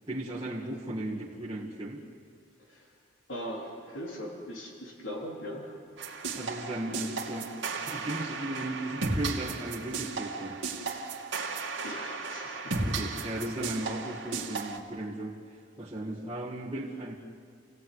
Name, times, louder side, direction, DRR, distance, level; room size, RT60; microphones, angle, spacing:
voice 1, 0.1-2.0 6.3-7.5 7.9-10.6 12.8-17.1, right 1 dB, 20° right, -4 dB, 1.9 m, -36 dB
voice 2, 2.6-2.9 3.3-5.7 11.5-12.9, equal, 70° left, -1 dB, 3.9 m, -40 dB
sound 1, 6.0-14.8, right 3 dB, 70° right, 2.5 m, -35 dB
30.0 x 17.0 x 9.6 m, 2.2 s
head